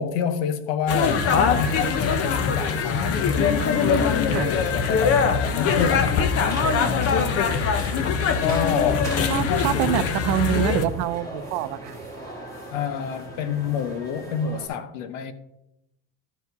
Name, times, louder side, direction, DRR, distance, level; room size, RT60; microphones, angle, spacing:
voice 1, 0.0-3.4 3.9-7.3 8.4-9.1 9.5-9.8 12.7-15.3, left 7 dB, 75° left, 1.1 m, -28 dB
sound 1, 0.9-10.8, left 6 dB, 35° left, 0.7 m, -22 dB
sound 2, 5.7-14.7, right 1 dB, 10° left, 1.8 m, -39 dB
voice 2, 9.3-12.0, right 11 dB, 65° right, 0.7 m, -26 dB
13.0 x 4.7 x 4.0 m
cardioid pair, 170°, 43 cm